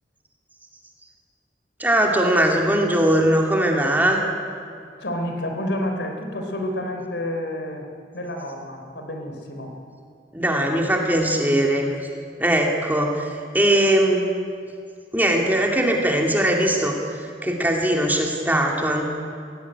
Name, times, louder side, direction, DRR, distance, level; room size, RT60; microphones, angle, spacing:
voice 1, 1.8-4.2 10.3-12.0 12.4-14.3 15.1-19.1, right 1 dB, 10° right, 0 dB, 2.4 m, -20 dB
voice 2, 5.0-7.9 8.1-9.7, left 1 dB, 80° left, 4 dB, 3.5 m, -29 dB
21.0 x 16.5 x 9.8 m, 2.4 s
head